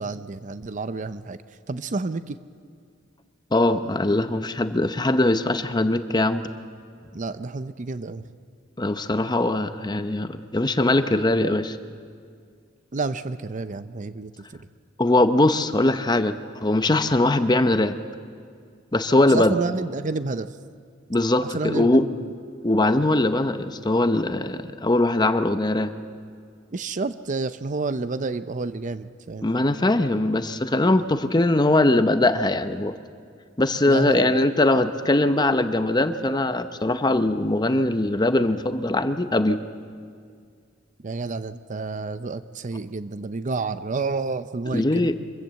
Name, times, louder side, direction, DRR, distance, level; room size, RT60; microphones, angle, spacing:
voice 1, 0.0-1.4 1.7-2.4 7.1-8.2 12.9-14.7 19.3-20.5 21.4-22.2 26.7-29.5 33.9-34.3 41.0-45.1, right 3 dB, 40° right, 13 dB, 0.6 m, -30 dB
voice 2, 3.5-6.5 8.8-11.8 15.0-18.0 18.9-19.6 21.1-22.1 22.6-25.9 29.4-32.9 33.6-39.6 44.7-45.1, left 2 dB, 20° left, 10 dB, 0.7 m, -21 dB
24.5 x 15.0 x 7.6 m, 2.1 s
head